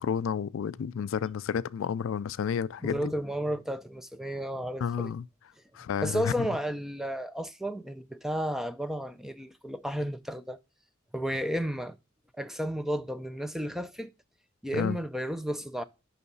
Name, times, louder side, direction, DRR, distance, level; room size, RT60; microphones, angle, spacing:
voice 1, 0.0-3.1 4.8-5.2 5.7-6.5 14.7-15.0, left 7 dB, 70° left, 0.3 m, -31 dB
voice 2, 2.8-5.1 6.0-10.6 11.1-12.0 12.4-14.1 14.6-15.8, equal, ahead, 0.5 m, -32 dB
6.9 x 5.6 x 5.3 m
head